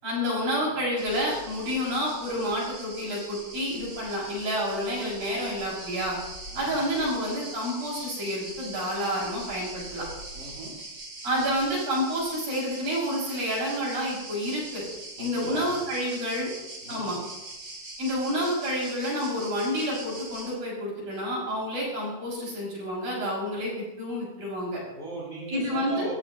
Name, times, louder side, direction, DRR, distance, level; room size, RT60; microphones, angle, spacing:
voice 1, 0.0-6.2 6.5-10.1 11.2-14.8 15.2-16.5 16.9-17.2 18.0-24.8 25.5-26.1, equal, 45° right, -5 dB, 8.0 m, -29 dB
sound 1, 1.0-20.5, right 2 dB, 25° right, 5.0 m, -42 dB
voice 2, 10.3-10.8 15.2-15.8 16.8-17.1 24.9-26.1, right 1 dB, 15° left, -5 dB, 4.5 m, -38 dB
26.5 x 15.0 x 3.1 m, 0.99 s
omnidirectional pair, 5.9 m